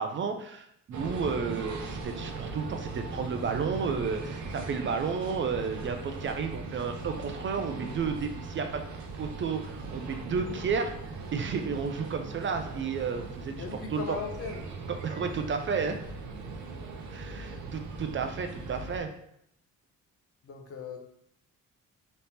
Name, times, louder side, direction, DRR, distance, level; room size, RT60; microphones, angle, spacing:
voice 1, 0.0-8.8 9.2-11.0 11.3-14.2 14.9-16.0 17.1-19.1, right 5 dB, 40° right, 6 dB, 0.4 m, -32 dB
sound 1, 0.9-19.0, right 3 dB, 70° right, 0.7 m, -39 dB
voice 2, 13.6-14.6 20.4-21.0, left 5 dB, 50° left, 3 dB, 0.8 m, -37 dB
4.1 x 3.4 x 2.8 m, 0.75 s
cardioid pair, 90°, 30 cm